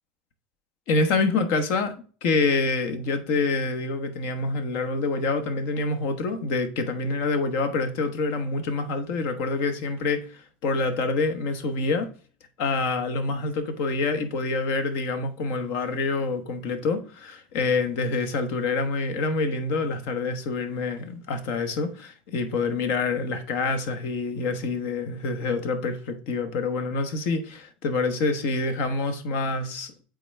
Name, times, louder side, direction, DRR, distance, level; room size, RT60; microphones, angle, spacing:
voice 1, 0.9-1.9 2.2-12.1 12.6-29.9, left 3 dB, 60° left, 1.2 m, -26 dB
8.3 x 3.8 x 3.3 m
hypercardioid pair, 90°, 5 cm